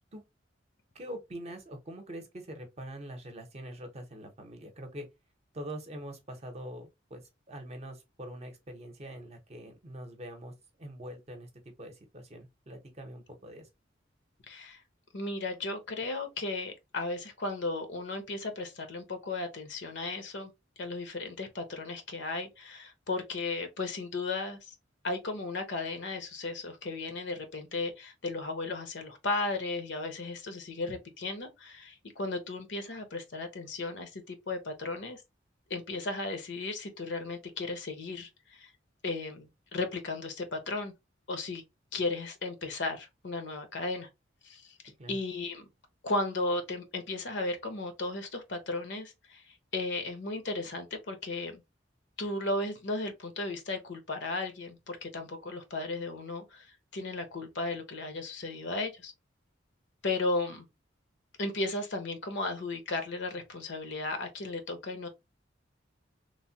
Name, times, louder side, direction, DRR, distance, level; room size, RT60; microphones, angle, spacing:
voice 1, 0.9-5.1 5.5-10.5 10.8-11.5 11.8-13.7 45.0-45.2, right 1 dB, 35° right, 0.7 m, -44 dB
voice 2, 14.5-14.8 15.1-20.5 20.8-24.7 25.0-35.2 35.7-38.7 39.0-40.9 41.3-41.6 41.9-44.1 44.4-44.8 45.1-45.7 46.0-51.6 52.2-59.1 60.0-60.6 61.4-65.1, left 2 dB, 65° left, 0.8 m, -35 dB
3.2 x 2.1 x 2.7 m
head